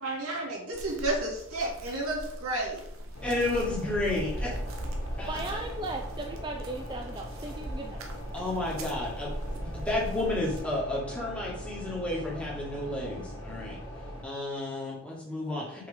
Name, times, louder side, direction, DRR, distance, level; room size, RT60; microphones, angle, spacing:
voice 1, 0.0-2.8, right 2 dB, 90° right, -4 dB, 2.5 m, -31 dB
sound 1, 0.7-10.6, right 1 dB, 70° right, 0.9 m, -39 dB
sound 2, 3.1-14.2, equal, 75° left, 1.9 m, -41 dB
voice 2, 3.2-4.5 5.2-5.6 8.3-9.3 9.6-13.8 14.2-15.9, left 2 dB, 5° left, -6 dB, 1.9 m, -32 dB
voice 3, 5.3-8.0, right 2 dB, 20° right, 2 dB, 0.4 m, -37 dB
5.6 x 5.2 x 3.6 m, 0.75 s
head